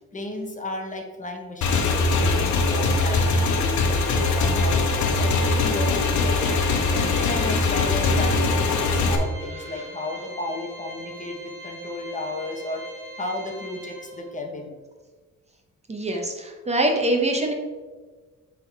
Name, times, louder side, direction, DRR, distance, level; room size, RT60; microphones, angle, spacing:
voice 1, 0.1-4.8 5.2-6.6 6.9-12.8 13.2-14.7, left 2 dB, 25° left, 3 dB, 0.9 m, -33 dB
Motorcycle / Engine, 1.6-9.2, left 3 dB, 75° left, 1.0 m, -22 dB
Organ, 3.9-14.5, right 1 dB, 40° right, 2.1 m, -41 dB
voice 2, 15.9-17.5, right 1 dB, 20° right, 2 dB, 0.8 m, -24 dB
7.6 x 3.7 x 4.6 m, 1.4 s
cardioid pair, 135°, 30 cm